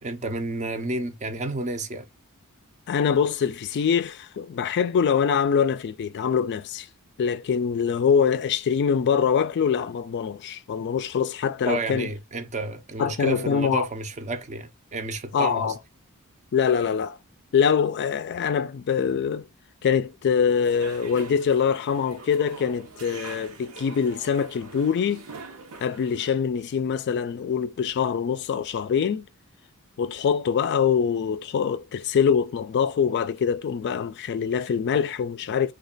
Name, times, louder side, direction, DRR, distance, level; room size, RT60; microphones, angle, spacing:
voice 1, 0.0-2.1 11.7-15.7, right 2 dB, 35° right, 0.5 m, -31 dB
voice 2, 2.9-6.9 7.2-12.1 13.0-13.8 15.3-15.8 16.5-17.2 17.5-19.5 19.8-25.3 25.8-29.3 30.0-35.7, left 7 dB, 50° left, 0.3 m, -24 dB
sound 1, 20.5-26.3, right 4 dB, 70° right, 0.8 m, -43 dB
3.2 x 2.3 x 3.8 m
head